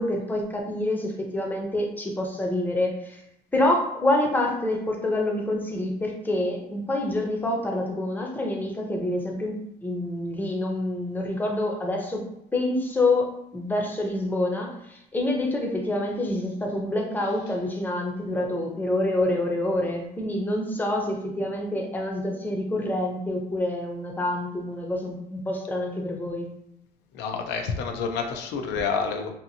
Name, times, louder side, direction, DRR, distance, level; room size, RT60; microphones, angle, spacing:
voice 1, 0.0-3.2 3.5-9.6 9.8-26.5, left 1 dB, 10° left, 1 dB, 0.6 m, -27 dB
voice 2, 27.1-29.3, left 5 dB, 85° left, 4 dB, 0.5 m, -28 dB
2.8 x 2.5 x 2.6 m, 0.79 s
cardioid pair, 110°, 17 cm